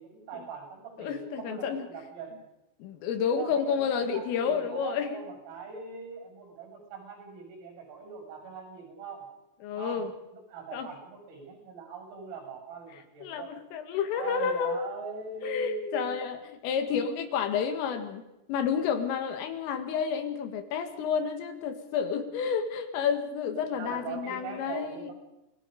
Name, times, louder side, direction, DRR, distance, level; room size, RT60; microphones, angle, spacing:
voice 1, 0.0-2.4 3.3-3.8 4.1-9.2 9.7-13.5 14.1-16.1 16.7-17.0 23.7-25.1, right 4 dB, 80° right, 2 dB, 9.8 m, -41 dB
voice 2, 1.0-1.9 2.8-5.2 9.6-10.1 10.7-10.9 13.2-14.8 15.4-18.2 18.5-25.1, left 7 dB, 80° left, 7 dB, 4.4 m, -30 dB
29.0 x 20.0 x 5.2 m, 0.92 s
omnidirectional pair, 6.0 m